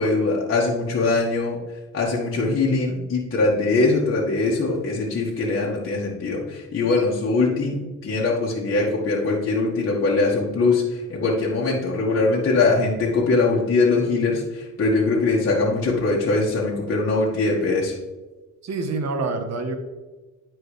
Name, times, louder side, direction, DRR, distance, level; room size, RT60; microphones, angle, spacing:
voice 1, 0.0-1.6 1.9-17.9, left 3 dB, 45° left, -5 dB, 1.6 m, -22 dB
voice 2, 18.6-19.8, right 3 dB, 60° right, 7 dB, 1.2 m, -26 dB
10.0 x 4.6 x 3.3 m, 1.2 s
cardioid pair, 90°, 30 cm